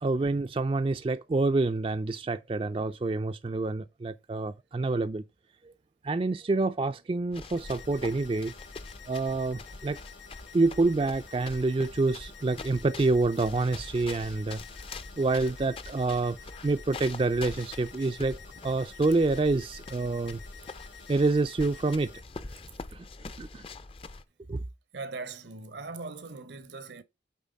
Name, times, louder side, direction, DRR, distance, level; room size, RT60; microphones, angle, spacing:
voice 1, 0.0-5.2 5.6-5.7 6.0-8.5 9.1-10.0 10.5-14.6 15.2-20.4 21.1-22.1 22.9-23.0 23.4-23.6 24.5-24.6, right 3 dB, 30° right, 0.3 m, -27 dB
sound 1, 7.3-24.2, left 3 dB, 30° left, 0.4 m, -44 dB
sound 2, 7.6-22.2, left 6 dB, 80° left, 2.6 m, -51 dB
voice 2, 24.9-27.0, right 3 dB, 75° right, 0.9 m, -40 dB
7.1 x 4.5 x 5.2 m
head